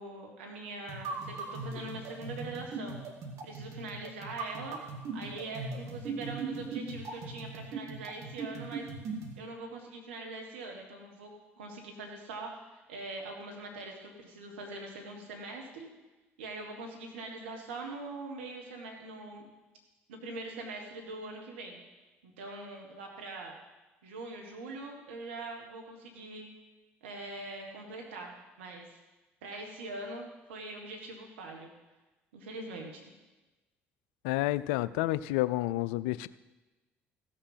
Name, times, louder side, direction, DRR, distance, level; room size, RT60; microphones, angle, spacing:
voice 1, 0.0-3.0 3.4-4.8 5.1-8.8 9.4-11.3 11.6-15.9 16.4-19.5 20.1-21.8 22.2-23.5 24.0-26.5 27.0-28.9 29.4-31.7 32.3-33.0, right 2 dB, 85° right, 1 dB, 1.4 m, -42 dB
sound 1, 0.9-9.4, right 3 dB, 60° right, 1.8 m, -39 dB
voice 2, 34.2-36.3, left 17 dB, 80° left, 16 dB, 0.4 m, -30 dB
15.5 x 6.6 x 5.7 m, 1.1 s
hypercardioid pair, 55°, 6 cm